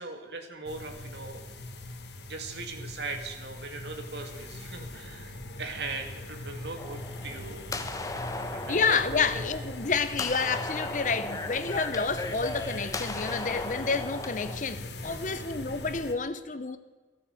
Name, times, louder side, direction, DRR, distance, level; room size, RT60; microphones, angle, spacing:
voice 1, 0.0-1.5 2.3-7.6 8.4-9.4 15.0-15.5, right 3 dB, 75° right, 2.0 m, -40 dB
sound 1, 0.7-16.1, left 1 dB, 75° left, 1.7 m, -41 dB
sound 2, 6.8-14.6, left 2 dB, 20° left, 1.0 m, -37 dB
voice 2, 8.7-16.8, left 5 dB, 45° left, 0.8 m, -29 dB
14.0 x 11.5 x 7.8 m
head